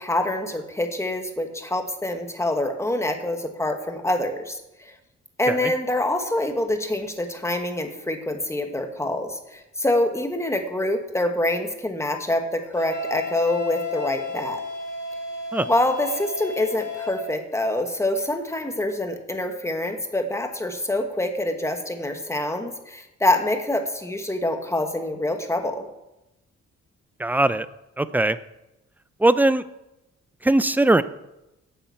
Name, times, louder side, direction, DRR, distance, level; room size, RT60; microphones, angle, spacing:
voice 1, 0.0-4.9 5.4-14.6 15.7-25.9, left 1 dB, 10° left, 5 dB, 1.2 m, -26 dB
Wind instrument woodwind instrument, 12.7-17.3, left 3 dB, 35° left, 2.7 m, -32 dB
voice 2, 27.2-27.7 28.0-28.4 29.2-29.6 30.4-31.0, right 2 dB, 5° right, 14 dB, 0.3 m, -20 dB
8.9 x 8.6 x 8.1 m, 0.93 s
wide cardioid pair, 170°, 29 cm